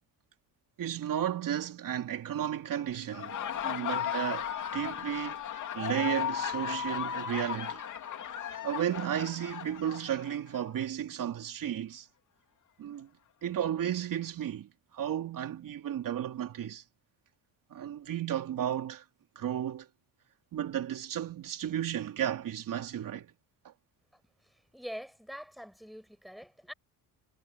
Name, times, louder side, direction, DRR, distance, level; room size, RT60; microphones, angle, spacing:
voice 1, 0.8-3.4 3.6-5.4 5.7-7.8 8.6-12.1 12.8-13.1 13.4-16.8 17.7-19.0 19.3-19.9 20.5-23.3 23.6-23.7, right 10 dB, 55° right, 3.2 m, -33 dB
Laughter, 3.0-10.7, left 9 dB, 50° left, 2.7 m, -36 dB
voice 2, 24.7-26.7, equal, ahead, 6.4 m, -44 dB
cardioid pair, 120°, 39 cm